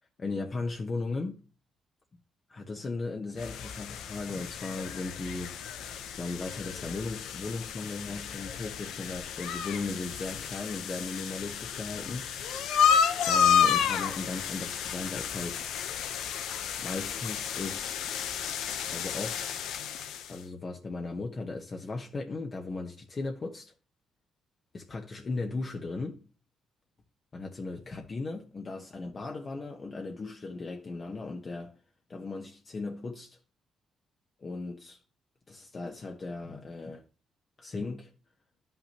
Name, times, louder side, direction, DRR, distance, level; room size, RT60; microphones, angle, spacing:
voice 1, 0.2-1.4 2.5-5.6 6.2-12.8 13.3-15.6 16.8-18.0 18.9-19.4 20.3-23.7 24.7-26.2 27.3-31.8 32.1-33.4 34.4-35.0 35.5-37.0 37.6-38.1, left 3 dB, 35° left, 1.0 m, -37 dB
sound 1, 3.4-20.4, left 8 dB, 85° left, 0.8 m, -31 dB
11.5 x 5.6 x 2.9 m
cardioid pair, 90°, 0 cm